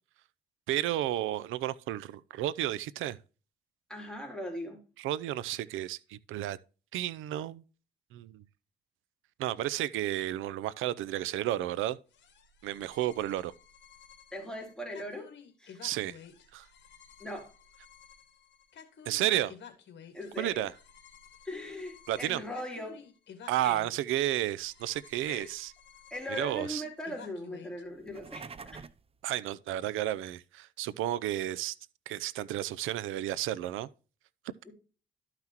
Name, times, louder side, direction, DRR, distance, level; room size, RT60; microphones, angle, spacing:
voice 1, 0.7-3.2 5.0-6.6 6.9-7.6 8.1-8.4 9.4-12.0 12.6-13.5 15.8-16.2 16.5-16.7 19.1-19.5 20.4-20.7 22.1-22.4 23.5-25.7 26.3-26.8 29.2-31.8 32.1-33.9, right 13 dB, 90° right, 0.6 m, -32 dB
voice 2, 3.9-4.8 14.3-15.3 15.6-15.9 17.2-17.5 20.1-20.7 21.4-23.0 23.6-23.8 25.3-25.5 26.1-28.8 34.7-34.8, left 1 dB, 5° left, 3.8 m, -39 dB
sound 1, 12.1-27.8, left 7 dB, 65° left, 1.9 m, -53 dB
sound 2, 27.9-29.1, right 5 dB, 30° right, 0.6 m, -46 dB
12.0 x 5.9 x 3.0 m
cardioid pair, 90°, 20 cm